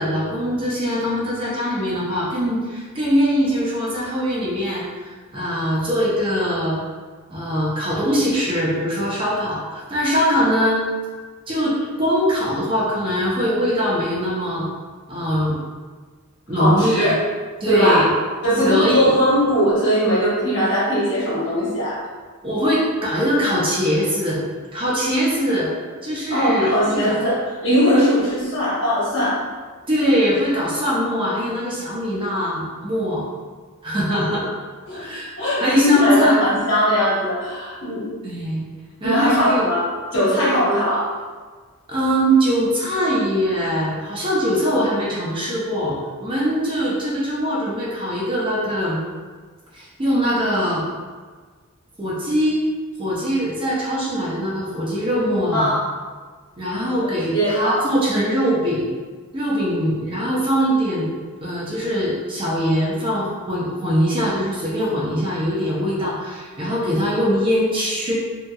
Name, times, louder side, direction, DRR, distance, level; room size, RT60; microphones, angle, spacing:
voice 1, 0.0-4.9 5.3-6.8 7.3-10.8 11.5-14.6 15.1-15.6 16.5-17.1 17.6-18.1 18.6-19.1 22.4-24.4 24.7-25.7 26.0-27.2 27.8-28.2 29.9-33.3 33.8-34.4 34.9-35.3 35.6-36.4 38.2-38.7 39.0-39.7 41.9-49.0 49.7-50.8 52.0-52.6 53.0-55.7 56.6-58.9 59.3-61.0 61.4-68.1, equal, 25° right, -7 dB, 0.6 m, -22 dB
voice 2, 16.5-17.2 17.7-18.1 18.4-22.0 26.3-29.5 34.9-35.1 35.4-38.1 39.0-41.2 55.5-55.8 57.1-57.8, equal, 55° left, -9 dB, 1.2 m, -20 dB
2.8 x 2.8 x 2.3 m, 1.5 s
head